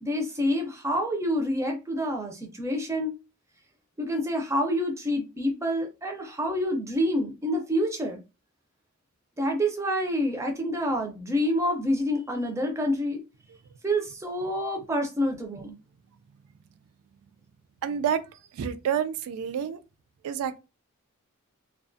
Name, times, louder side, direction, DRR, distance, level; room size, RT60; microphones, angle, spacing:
voice 1, 0.0-3.2 4.0-8.2 9.4-13.2 13.8-15.8, equal, 15° right, 0.4 m, -27 dB
voice 2, 17.8-18.2 18.5-19.8 20.2-20.6, right 8 dB, 90° right, 0.3 m, -28 dB
2.4 x 2.2 x 2.5 m
head